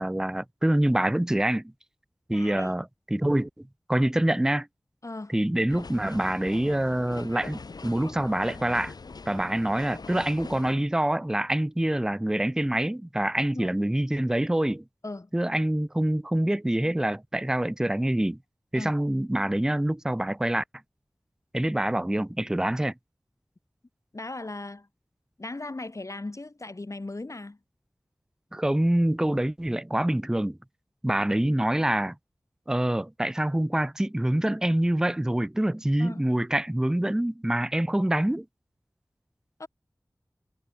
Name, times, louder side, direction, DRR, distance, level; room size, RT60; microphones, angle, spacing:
voice 1, 0.0-1.7 2.3-4.7 5.3-8.9 9.3-14.8 15.3-18.4 18.7-20.6 21.5-22.9 28.5-30.6 31.0-32.2 32.7-38.5, right 1 dB, 10° right, 0.4 m, -26 dB
voice 2, 2.3-2.7 5.0-5.4 13.5-13.7 15.0-15.3 18.7-19.0 24.1-24.9 25.4-27.6 36.0-36.2 39.6-39.7, left 2 dB, 50° left, 3.1 m, -37 dB
sound 1, 5.7-10.7, left 4 dB, 90° left, 0.9 m, -42 dB
wide cardioid pair, 55°, 7 cm